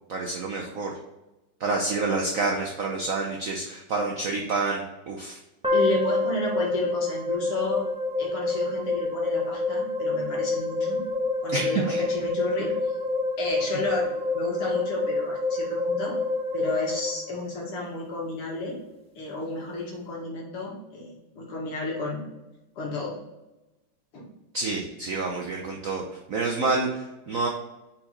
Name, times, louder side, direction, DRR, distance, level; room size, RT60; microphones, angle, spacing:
voice 1, 0.1-0.9 1.6-5.4 11.5-12.1 24.5-27.5, right 3 dB, 75° right, 0 dB, 0.7 m, -28 dB
sound 1, 5.6-17.9, left 2 dB, 5° right, 0.8 m, -28 dB
voice 2, 5.7-7.9 8.2-11.0 11.4-12.7 13.4-16.2 16.5-18.8 19.2-22.3 22.8-23.1 24.1-24.3, left 3 dB, 90° left, -2 dB, 2.7 m, -32 dB
5.7 x 4.5 x 4.1 m, 1.0 s
omnidirectional pair, 2.4 m